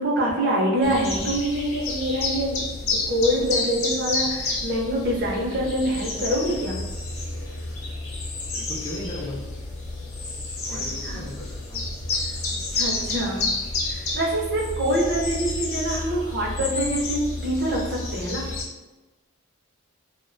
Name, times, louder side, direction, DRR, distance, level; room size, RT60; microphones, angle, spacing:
voice 1, 0.0-6.8 11.0-11.2 12.2-12.3 12.7-13.4 13.9-18.5, equal, 50° right, -2 dB, 0.5 m, -25 dB
sound 1, 0.8-18.6, left 3 dB, 75° left, 0.6 m, -30 dB
voice 2, 8.5-9.4 10.6-11.8 15.1-15.2, left 1 dB, 20° left, -3 dB, 0.3 m, -36 dB
2.3 x 2.1 x 2.5 m, 1.1 s
head